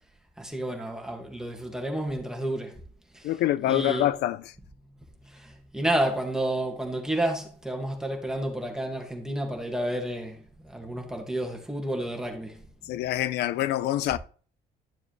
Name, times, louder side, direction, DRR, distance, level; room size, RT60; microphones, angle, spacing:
voice 1, 0.4-2.8 3.1-3.3 3.6-4.1 5.2-13.1, right 1 dB, 5° right, 2.4 m, -31 dB
voice 2, 3.2-4.4 12.9-14.2, left 13 dB, 80° left, 0.7 m, -25 dB
12.5 x 6.9 x 3.4 m
cardioid pair, 110°, 17 cm